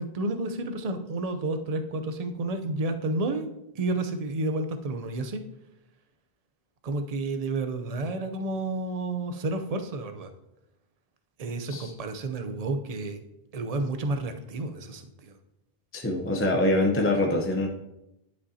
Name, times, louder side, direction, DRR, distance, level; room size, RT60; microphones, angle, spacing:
voice 1, 0.0-3.5 3.7-5.4 6.8-10.3 11.4-13.2 13.5-15.4, right 2 dB, 45° right, 7 dB, 0.6 m, -30 dB
voice 2, 15.9-17.7, left 1 dB, 15° left, 1 dB, 0.7 m, -24 dB
11.5 x 5.2 x 2.8 m, 0.88 s
omnidirectional pair, 1.1 m